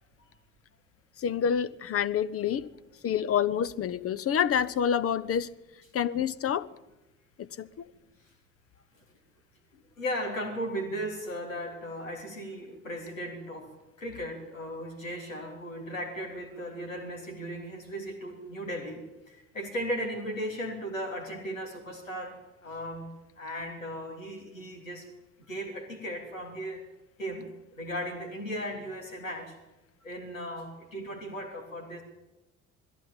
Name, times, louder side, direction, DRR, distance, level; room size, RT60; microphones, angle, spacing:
voice 1, 1.2-2.7 3.0-5.5 5.9-6.7 7.4-7.7, left 8 dB, 35° left, 0.9 m, -27 dB
voice 2, 9.7-25.1 25.4-26.8 27.2-29.6 30.0-32.0, equal, 80° left, 3.5 m, -37 dB
21.0 x 15.5 x 9.0 m
figure-of-eight pair, 50°, 39 cm